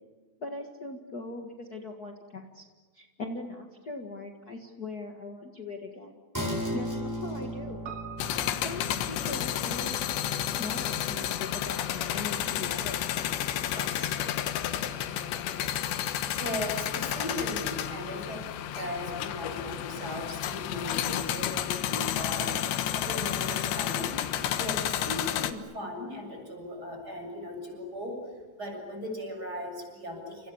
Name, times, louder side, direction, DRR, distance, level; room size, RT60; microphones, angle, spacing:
voice 1, 0.4-2.6 2.9-6.2 6.7-7.8 8.6-10.1 10.6-14.1, left 3 dB, 55° left, 3 dB, 1.0 m, -40 dB
sound 1, 6.3-13.4 13.7-13.8, equal, 5° right, 7.1 m, -38 dB
Piano, 7.8-12.4 12.6-12.7, right 10 dB, 40° right, 2.8 m, -49 dB
sound 2, 8.2-25.5, left 11 dB, 85° left, 3.6 m, -31 dB
voice 2, 16.4-30.5, left 1 dB, 20° right, 3 dB, 7.7 m, -38 dB
30.0 x 27.5 x 7.3 m, 1.4 s
omnidirectional pair, 4.9 m